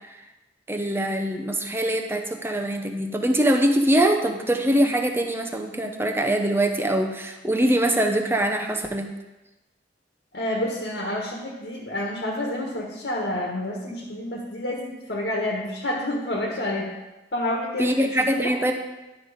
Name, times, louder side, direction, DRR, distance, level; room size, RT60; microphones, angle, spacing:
voice 1, 0.7-9.1 17.8-18.7, right 1 dB, 15° right, 4 dB, 0.7 m, -23 dB
voice 2, 10.3-16.9 17.3-18.1 18.4-18.5, left 1 dB, 70° left, -2 dB, 1.6 m, -29 dB
11.0 x 5.5 x 5.1 m, 1.0 s
head